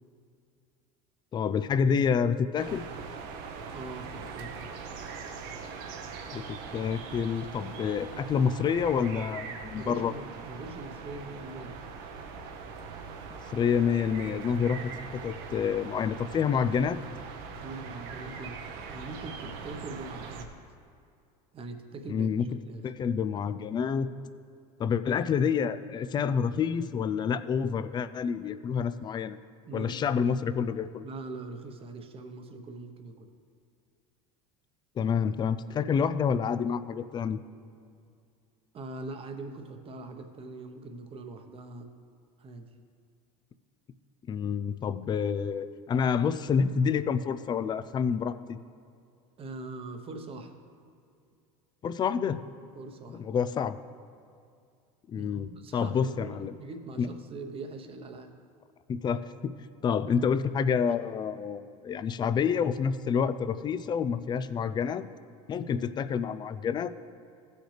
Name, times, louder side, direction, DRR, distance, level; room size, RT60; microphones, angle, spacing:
voice 1, 1.3-2.9 6.3-10.1 13.5-14.8 15.1-17.0 22.1-22.5 22.8-24.1 24.8-29.4 29.7-31.1 35.0-37.4 44.3-48.6 51.8-52.4 53.1-53.8 55.1-56.5 57.0-57.1 58.9-59.5 59.8-65.1 65.5-66.9, left 6 dB, 25° left, 13 dB, 0.4 m, -28 dB
sound 1, 2.6-20.4, right 5 dB, 65° right, 1.0 m, -41 dB
voice 2, 3.7-4.5 9.8-11.8 17.5-18.6 18.9-20.5 21.5-22.3 22.6-22.8 29.7-29.9 31.0-33.3 38.7-41.9 42.4-42.6 49.4-50.5 52.8-53.2 55.1-58.3, right 3 dB, 30° right, 6 dB, 1.0 m, -42 dB
16.0 x 6.4 x 3.3 m, 2.4 s
supercardioid pair, 110°, 17 cm